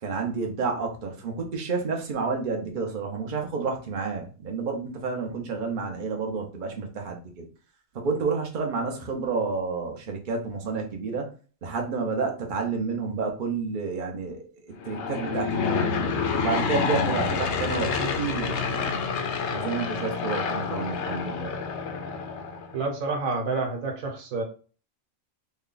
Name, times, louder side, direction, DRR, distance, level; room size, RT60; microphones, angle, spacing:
voice 1, 0.0-7.5 7.9-11.3 11.6-16.1 16.4-19.0 19.5-21.6, right 4 dB, 45° right, 2 dB, 0.8 m, -30 dB
Aircraft / Engine, 14.8-22.8, left 5 dB, 65° left, 0.8 m, -28 dB
voice 2, 22.7-24.4, right 3 dB, 90° right, 2 dB, 1.3 m, -28 dB
3.2 x 2.2 x 3.7 m, 0.38 s
omnidirectional pair, 1.4 m